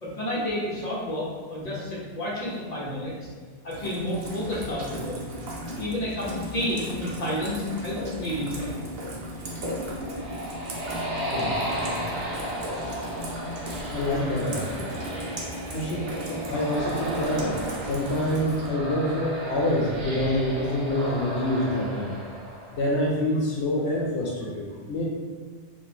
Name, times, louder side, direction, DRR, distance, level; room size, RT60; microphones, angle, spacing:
voice 1, 0.0-3.1 3.6-5.2 5.8-8.7, left 1 dB, 35° left, -6 dB, 1.2 m, -30 dB
Rain, 3.7-18.7, equal, 60° right, 0.9 m, -36 dB
sound 1, 9.8-23.2, right 1 dB, 85° right, 1.1 m, -34 dB
voice 2, 11.3-11.7 13.9-15.0 15.7-22.1 22.7-25.1, left 1 dB, 80° left, -3 dB, 0.9 m, -27 dB
4.1 x 2.6 x 2.8 m, 1.5 s
omnidirectional pair, 1.2 m